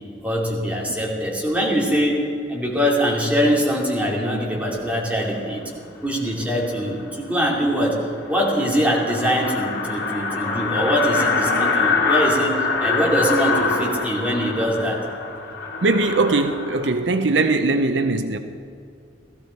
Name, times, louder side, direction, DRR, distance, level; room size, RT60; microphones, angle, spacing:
voice 1, 0.2-2.2 2.5-15.0, equal, 10° right, 2.7 m, -23 dB
sound 1, 7.0-7.1 7.5-7.6 7.9-8.0 8.2-16.9, left 4 dB, 60° left, 2.8 m, -24 dB
voice 2, 15.8-18.4, right 3 dB, 75° right, 0.6 m, -20 dB
17.0 x 14.5 x 4.5 m
head